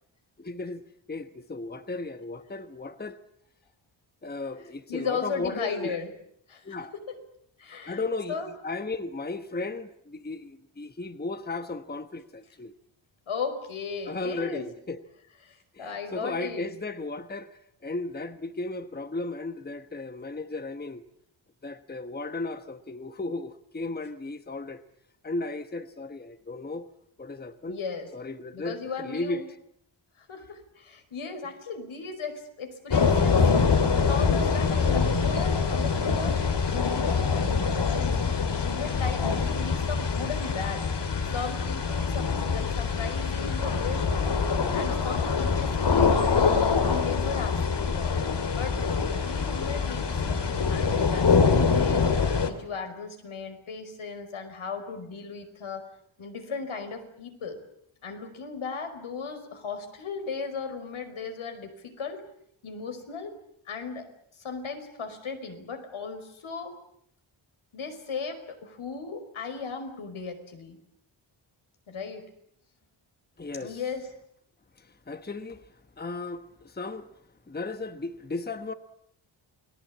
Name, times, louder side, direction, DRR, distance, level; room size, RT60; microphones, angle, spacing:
voice 1, 0.4-0.8 1.1-3.2 4.2-6.0 6.6-6.9 7.9-8.4 8.6-12.7 14.1-15.0 15.7-21.0 21.6-24.8 25.2-26.9 27.2-27.8 28.1-29.4 73.4-73.8 74.8-75.7 76.0-77.1 77.5-78.7, left 3 dB, 20° left, 1.2 m, -35 dB
voice 2, 4.9-6.1 6.5-6.8 7.1-7.2 7.6-8.0 8.3-8.5 13.3-14.7 15.4-16.7 27.7-28.1 28.5-29.5 30.2-36.4 36.7-37.4 37.8-40.9 41.3-44.4 44.7-46.5 46.8-48.2 48.5-50.4 50.7-52.0 52.4-55.9 56.2-57.6 58.0-62.3 62.6-63.4 63.7-64.1 64.4-66.8 67.7-70.8 71.9-72.3 73.6-74.1, left 5 dB, 80° left, 5.2 m, -36 dB
sound 1, 32.9-52.5, left 5 dB, 60° left, 2.8 m, -24 dB
29.0 x 20.0 x 8.6 m
wide cardioid pair, 125°, 47 cm